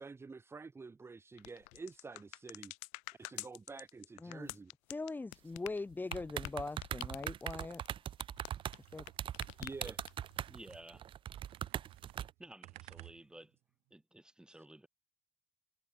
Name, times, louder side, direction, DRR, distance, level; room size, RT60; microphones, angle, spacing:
voice 1, 0.0-2.7 3.2-4.7 9.6-10.0, right 4 dB, 25° right, 1.4 m, -48 dB
sound 1, 1.4-9.1 9.3-10.4, left 40 dB or more, 85° left, 2.0 m, -47 dB
voice 2, 4.9-7.8 8.9-9.0, left 3 dB, 15° left, 1.6 m, -41 dB
sound 2, 6.1-12.3, right 10 dB, 50° right, 1.1 m, -40 dB
sound 3, 8.6-11.1 11.3-13.6, right 21 dB, 80° right, 4.2 m, -57 dB
voice 3, 10.4-11.1 12.4-13.5 13.9-14.9, right 1 dB, 5° right, 7.5 m, -54 dB
supercardioid pair, 80°, 11 cm